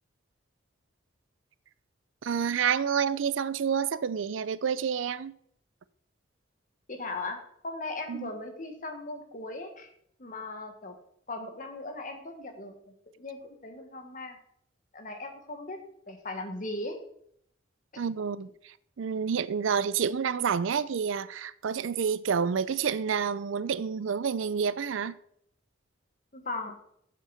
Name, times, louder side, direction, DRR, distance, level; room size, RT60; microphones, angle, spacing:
voice 1, 2.2-5.3 8.1-8.3 18.0-25.2, right 7 dB, 80° right, 0.4 m, -29 dB
voice 2, 6.9-9.9 10.2-10.9 11.3-14.4 14.9-17.0 17.9-18.0 26.3-26.8, left 2 dB, 40° left, 1.4 m, -38 dB
7.6 x 6.5 x 5.7 m
head